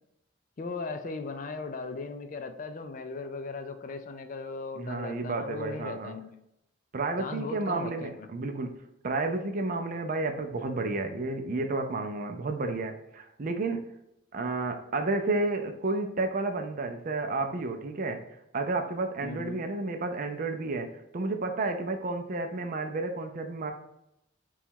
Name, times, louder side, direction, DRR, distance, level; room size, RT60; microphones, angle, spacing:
voice 1, 0.6-6.3 7.2-8.3 19.2-19.6, left 3 dB, 40° left, 8 dB, 0.4 m, -37 dB
voice 2, 4.8-6.2 6.9-8.8 9.0-13.9 14.3-18.2 18.5-23.7, right 3 dB, 45° right, 5 dB, 0.5 m, -31 dB
4.0 x 2.3 x 4.4 m, 0.83 s
head